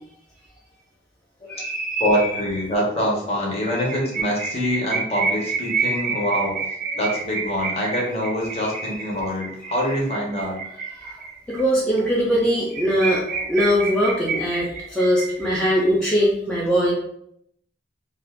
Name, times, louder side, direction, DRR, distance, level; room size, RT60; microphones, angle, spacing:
voice 1, 1.5-2.4 3.8-3.9 4.4-4.5 5.6-6.0 6.9-7.0 8.4-9.0 9.6-9.8 11.0-11.1 11.5-16.9, equal, 5° left, -7 dB, 0.5 m, -22 dB
voice 2, 2.0-6.6 7.0-10.6 13.3-13.4, equal, 35° left, -3 dB, 0.9 m, -24 dB
sound 1, 3.7-11.6 12.0-12.1 12.4-12.5 12.7-15.8, right 5 dB, 50° right, 0.5 m, -29 dB
2.4 x 2.3 x 3.5 m, 0.71 s
head